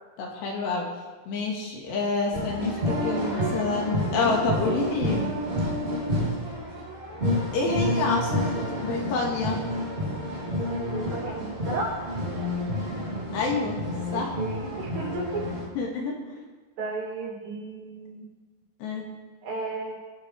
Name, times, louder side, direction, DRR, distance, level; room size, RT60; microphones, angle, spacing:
voice 1, 0.2-0.9 1.3-5.4 7.5-8.6 8.8-9.6 13.3-13.8 14.1-14.3 15.8-16.2 18.8-19.0, left 4 dB, 65° left, -1 dB, 4.0 m, -28 dB
sound 1, 2.3-15.7, equal, 20° right, 1.9 m, -29 dB
voice 2, 10.9-11.9 14.1-15.4 16.8-18.3 19.4-20.0, right 3 dB, 65° right, -2 dB, 5.0 m, -34 dB
22.0 x 12.5 x 3.5 m, 1.3 s
omnidirectional pair, 5.5 m